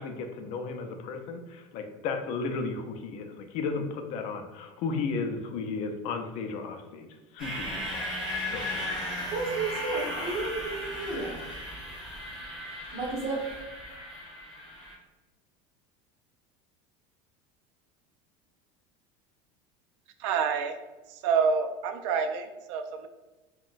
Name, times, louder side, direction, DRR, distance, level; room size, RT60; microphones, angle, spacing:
voice 1, 0.0-7.1 7.3-8.1 8.5-8.8, left 4 dB, 50° left, 6 dB, 0.4 m, -34 dB
sound 1, 7.4-14.9, left 1 dB, 5° right, 1.3 m, -36 dB
voice 2, 9.3-11.4 12.9-13.4, right 3 dB, 45° right, -3 dB, 1.0 m, -32 dB
voice 3, 20.2-20.8 21.1-23.1, right 6 dB, 85° right, 7 dB, 0.4 m, -28 dB
3.7 x 2.2 x 2.4 m, 1.1 s
cardioid pair, 155°, 15 cm